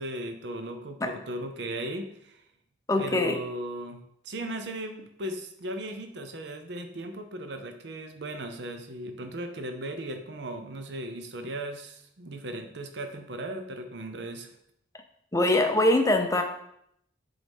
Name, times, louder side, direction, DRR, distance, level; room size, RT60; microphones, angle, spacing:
voice 1, 0.0-2.4 3.0-4.0 4.2-14.5, right 1 dB, 65° right, 6 dB, 0.7 m, -37 dB
voice 2, 2.9-3.3 15.3-16.4, left 1 dB, 15° left, 5 dB, 0.6 m, -23 dB
7.3 x 3.9 x 3.5 m, 0.73 s
head